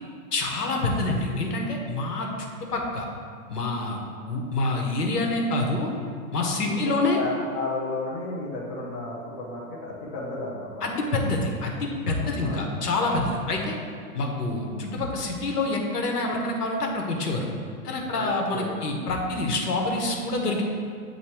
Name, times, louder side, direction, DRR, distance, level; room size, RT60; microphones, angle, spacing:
voice 1, 0.3-2.3 2.7-3.1 3.5-5.9 6.3-7.2 10.8-11.7 12.1-13.7 14.1-17.5 17.8-20.6, left 2 dB, 85° left, 1 dB, 1.2 m, -26 dB
voice 2, 6.6-10.9 12.2-12.7 18.1-18.8, left 2 dB, 15° left, -5 dB, 0.3 m, -33 dB
7.5 x 2.9 x 4.4 m, 2.2 s
hypercardioid pair, 125°, 45 cm